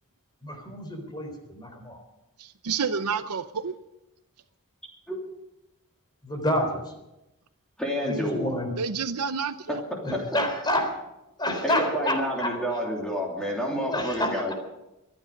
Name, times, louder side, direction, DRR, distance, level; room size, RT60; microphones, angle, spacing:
voice 1, 0.4-2.0 6.2-6.8 8.0-8.7 10.0-10.9 11.4-12.8 13.9-14.5, left 1 dB, 20° left, 5 dB, 3.8 m, -29 dB
voice 2, 2.4-3.7 8.8-9.8, right 5 dB, 85° right, 10 dB, 0.7 m, -29 dB
voice 3, 7.8-8.6 9.7-9.8 10.1-10.2 11.6-14.5, equal, 5° left, -2 dB, 3.0 m, -29 dB
25.5 x 10.0 x 5.3 m, 0.92 s
head